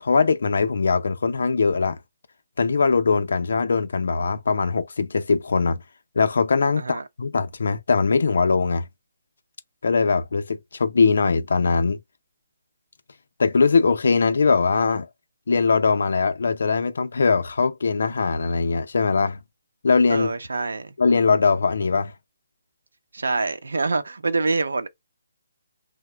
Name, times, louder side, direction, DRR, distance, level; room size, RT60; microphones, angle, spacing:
voice 1, 0.0-2.0 2.6-5.8 6.2-8.9 9.8-12.0 13.4-15.1 15.5-19.4 19.8-20.3 21.0-22.1, left 4 dB, 70° left, 0.5 m, -21 dB
voice 2, 20.1-20.9 23.1-24.9, right 3 dB, 80° right, 0.6 m, -25 dB
3.0 x 2.1 x 3.3 m
hypercardioid pair, 155°, 0 cm